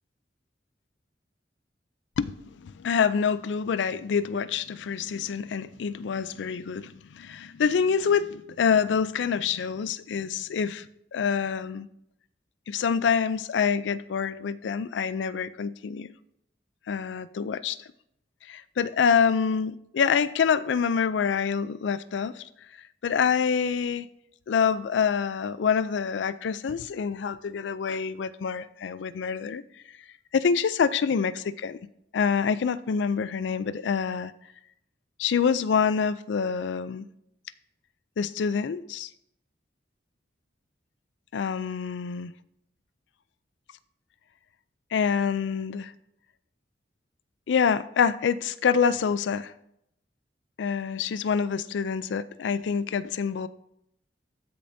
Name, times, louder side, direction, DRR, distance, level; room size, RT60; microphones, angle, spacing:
voice 1, 2.2-10.9 11.1-11.9 12.7-16.1 16.9-17.8 18.5-22.4 23.0-24.1 24.5-29.6 30.3-31.8 32.1-34.3 35.2-37.0 38.2-39.1 41.3-42.3 44.9-45.9 47.5-49.5 50.6-53.5, left 6 dB, 85° left, 0.4 m, -26 dB
14.0 x 6.8 x 2.7 m
head